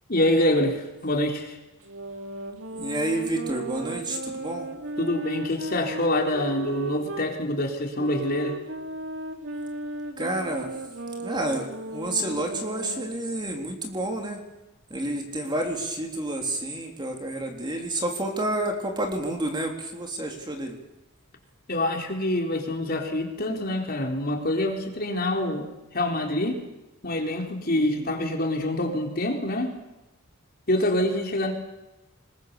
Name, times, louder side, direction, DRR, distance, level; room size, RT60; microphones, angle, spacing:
voice 1, 0.1-1.6 5.0-8.5 21.7-25.7 25.9-26.6 27.0-29.7 30.7-31.5, left 1 dB, 45° left, 2 dB, 3.9 m, -26 dB
sound 1, 1.8-7.3 7.9-13.1, right 1 dB, 60° right, 2.7 m, -35 dB
voice 2, 2.8-4.7 10.2-10.7 11.2-14.4 14.9-20.8 27.7-28.1, right 1 dB, 20° right, 2 dB, 3.6 m, -29 dB
26.5 x 21.0 x 6.9 m, 0.99 s
head